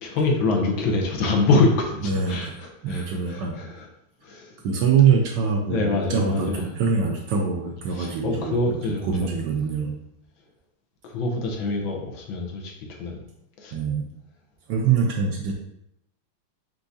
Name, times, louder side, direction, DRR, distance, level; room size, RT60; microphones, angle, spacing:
voice 1, 0.0-3.9 4.2-4.5 5.7-6.7 7.9-9.4 11.0-13.2 13.6-13.8, left 3 dB, 70° left, 1 dB, 1.5 m, -25 dB
voice 2, 2.0-2.4 2.8-3.6 4.6-9.9 13.7-14.1 14.7-15.5, right 6 dB, 70° right, 1 dB, 1.2 m, -24 dB
4.5 x 3.7 x 2.7 m, 0.79 s
omnidirectional pair, 2.3 m